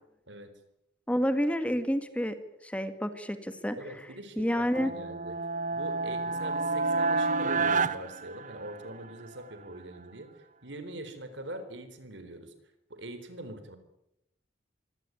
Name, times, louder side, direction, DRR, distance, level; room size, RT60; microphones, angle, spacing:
voice 1, 1.1-3.8 4.4-4.9, equal, 5° left, 10 dB, 1.8 m, -29 dB
voice 2, 3.8-5.4 5.7-12.5 12.9-13.8, right 1 dB, 75° right, 10 dB, 4.1 m, -43 dB
sound 1, 4.7-9.0, right 3 dB, 45° right, 1.0 m, -29 dB
24.5 x 17.5 x 9.7 m, 0.83 s
head